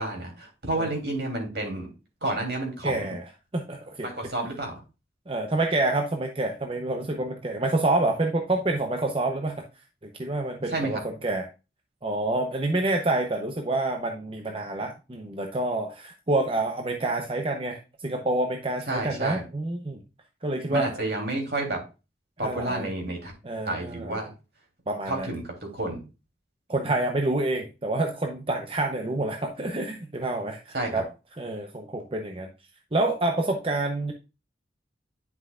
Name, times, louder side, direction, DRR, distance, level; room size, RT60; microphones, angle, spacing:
voice 1, 0.0-1.9 2.2-3.1 4.0-4.8 10.7-11.0 18.9-19.4 20.7-21.8 22.4-23.3 23.6-24.3 25.1-25.4 25.7-26.0 30.7-31.0, right 2 dB, 65° right, 1 dB, 3.2 m, -30 dB
voice 2, 2.8-3.2 3.5-4.1 5.3-9.6 10.0-11.5 12.0-20.0 20.4-21.0 22.4-22.9 23.4-24.2 24.9-25.3 26.7-31.1 31.4-32.5 32.9-34.1, right 2 dB, 30° right, 4 dB, 0.8 m, -28 dB
9.9 x 5.9 x 2.4 m, 0.29 s
head